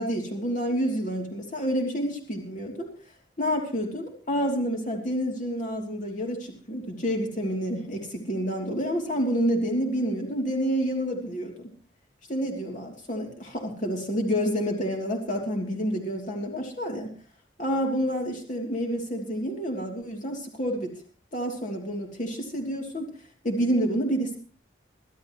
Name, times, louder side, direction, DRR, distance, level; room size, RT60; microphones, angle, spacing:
voice 1, 0.0-2.9 3.4-11.7 12.3-17.1 17.6-20.9 21.3-23.1 23.4-24.4, equal, 45° left, 1 dB, 3.1 m, -28 dB
24.0 x 13.5 x 3.1 m, 0.40 s
head